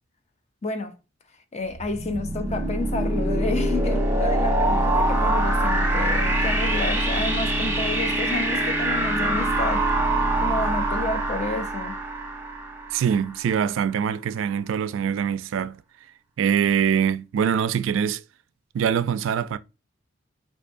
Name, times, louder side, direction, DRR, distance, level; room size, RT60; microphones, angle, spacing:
voice 1, 0.6-1.0 1.5-9.9 10.4-12.0, left 3 dB, 35° left, 0.5 m, -30 dB
sound 1, 1.7-13.4, right 1 dB, 10° right, 0.9 m, -24 dB
voice 2, 12.9-15.8 16.4-18.2 18.7-19.6, right 8 dB, 80° right, 0.3 m, -23 dB
4.5 x 2.6 x 2.5 m
head